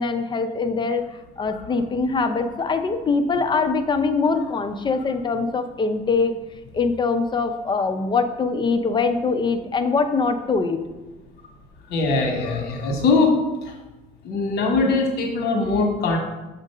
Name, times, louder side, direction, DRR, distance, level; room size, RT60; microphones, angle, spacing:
voice 1, 0.0-6.3 6.7-10.8, left 4 dB, 25° left, 8 dB, 0.6 m, -23 dB
voice 2, 11.9-13.3 13.6-13.7 14.2-16.2, left 3 dB, 75° left, 1 dB, 1.2 m, -21 dB
7.0 x 2.6 x 5.4 m, 1.1 s
cardioid pair, 110°, 17 cm